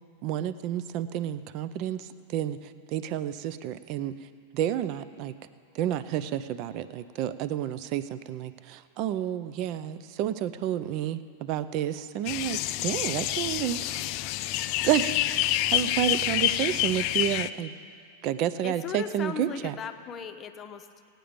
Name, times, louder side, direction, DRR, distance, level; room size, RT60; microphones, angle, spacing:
voice 1, 0.2-4.1 4.5-5.3 5.7-14.1 14.8-17.7 18.2-19.7, right 11 dB, 50° right, 14 dB, 0.5 m, -30 dB
sound 1, 12.3-17.5, left 14 dB, 50° left, 0.4 m, -27 dB
voice 2, 18.6-21.1, left 8 dB, 30° left, 8 dB, 0.8 m, -38 dB
17.0 x 9.1 x 5.1 m, 2.3 s
hypercardioid pair, 100°, 0 cm